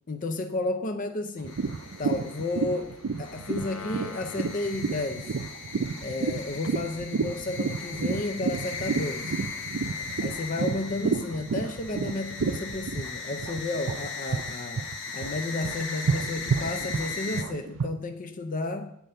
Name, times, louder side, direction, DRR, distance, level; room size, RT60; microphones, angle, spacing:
voice 1, 0.1-1.6 2.0-5.3 6.0-9.4 10.2-14.9 15.1-18.9, left 2 dB, 40° left, 0.6 m, -32 dB
sound 1, 1.4-14.5 14.8-17.9, right 5 dB, 65° right, 0.5 m, -30 dB
sound 2, 1.5-17.4, left 5 dB, 60° left, 1.0 m, -38 dB
9.0 x 4.4 x 6.6 m
head